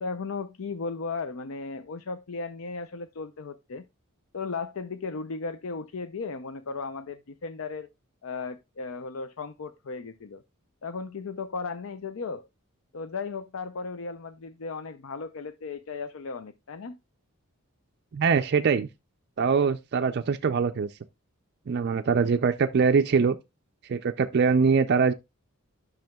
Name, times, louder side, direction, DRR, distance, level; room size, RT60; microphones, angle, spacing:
voice 1, 0.0-3.8 4.3-7.9 8.2-10.4 10.8-12.4 12.9-17.0, left 4 dB, 65° left, 0.5 m, -36 dB
voice 2, 18.1-18.9 19.4-20.9 21.7-23.4 23.9-25.1, right 5 dB, 50° right, 0.4 m, -23 dB
10.5 x 6.1 x 2.2 m
head